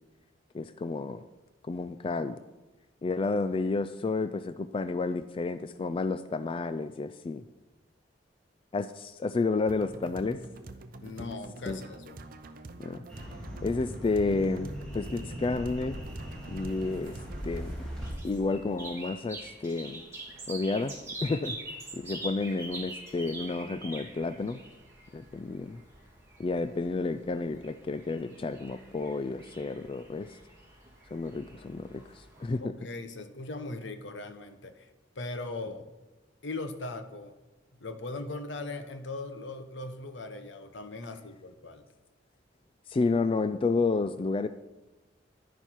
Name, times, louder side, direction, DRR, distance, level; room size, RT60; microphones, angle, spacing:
voice 1, 0.5-1.2 1.6-2.4 3.0-7.4 8.7-10.4 11.2-11.3 11.7-11.8 12.8-13.0 13.6-16.0 16.5-17.2 17.4-17.8 18.2-20.0 20.5-20.9 21.2-21.6 21.9-24.6 25.1-25.8 26.4-30.3 31.1-32.7 42.9-44.5, left 3 dB, 30° left, 12 dB, 0.3 m, -31 dB
sound 1, 9.7-17.7, right 2 dB, 50° right, 0.7 m, -46 dB
voice 2, 11.0-12.2 32.5-34.9 35.2-35.8 36.4-37.4 37.7-41.8, left 2 dB, 75° left, 9 dB, 1.0 m, -39 dB
sound 2, 13.1-18.1, equal, 5° left, 3.4 m, -40 dB
sound 3, 16.0-32.5, right 2 dB, 15° right, 3.0 m, -46 dB
11.0 x 10.0 x 4.5 m, 1.1 s
head